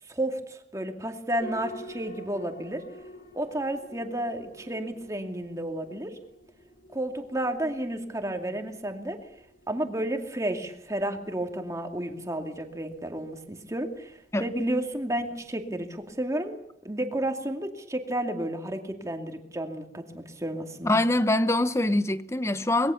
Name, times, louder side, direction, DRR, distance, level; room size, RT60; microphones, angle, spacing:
voice 1, 0.1-2.8 3.3-6.2 6.9-9.2 9.7-16.6 16.8-21.0, right 1 dB, 15° right, 2.4 m, -32 dB
sound 1, 1.4-16.2, left 1 dB, 50° left, 4.2 m, -50 dB
voice 2, 20.8-22.9, left 1 dB, 15° left, 0.9 m, -24 dB
25.0 x 21.0 x 7.1 m
head